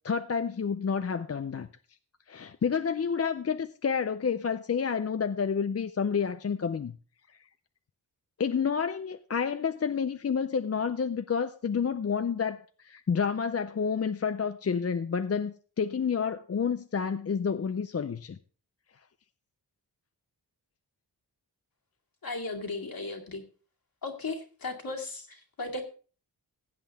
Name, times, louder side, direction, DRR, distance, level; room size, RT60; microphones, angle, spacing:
voice 1, 0.0-1.7 2.3-6.9 8.4-18.4, left 6 dB, 40° left, 0.5 m, -29 dB
voice 2, 22.2-23.4 24.0-25.8, left 3 dB, 60° left, 2.2 m, -36 dB
16.0 x 8.4 x 3.5 m
wide cardioid pair, 95°, 40 cm